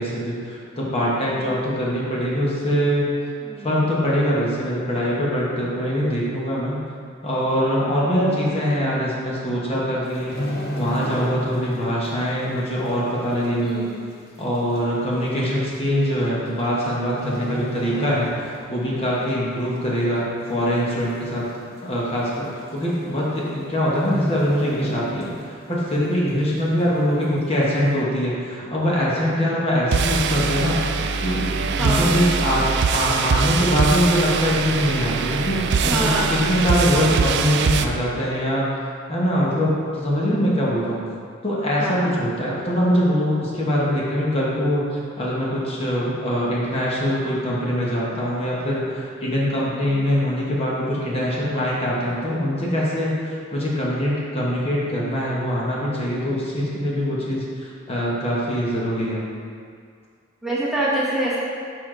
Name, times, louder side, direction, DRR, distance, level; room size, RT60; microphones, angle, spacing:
voice 1, 0.0-3.1 3.6-6.8 7.2-10.3 10.7-13.9 14.4-21.5 21.8-30.8 31.2-31.5 31.8-32.6 32.9-38.8 39.1-41.0 41.4-44.8 45.2-59.2, equal, 30° left, -6 dB, 1.1 m, -23 dB
sound 1, 10.0-11.8 12.0-12.3 12.9-13.0 13.9-14.0 14.2-14.3 15.1-15.4 16.5-16.9 17.1-18.7 19.0-19.3 19.8-20.3 20.6-20.7 21.0-21.1 21.5-21.6 22.5-22.6 22.9-23.2 23.5-23.6 24.0-25.6 26.0-26.1, equal, 50° left, 0.9 m, -31 dB
voice 2, 13.6-14.0 31.8-32.1 35.8-36.5 40.7-41.0 41.8-42.1 60.4-61.4, right 1 dB, 5° right, -8 dB, 1.0 m, -26 dB
sound 2, 29.9-37.9, right 5 dB, 60° right, 0.3 m, -23 dB
6.9 x 4.7 x 3.8 m, 2.2 s
head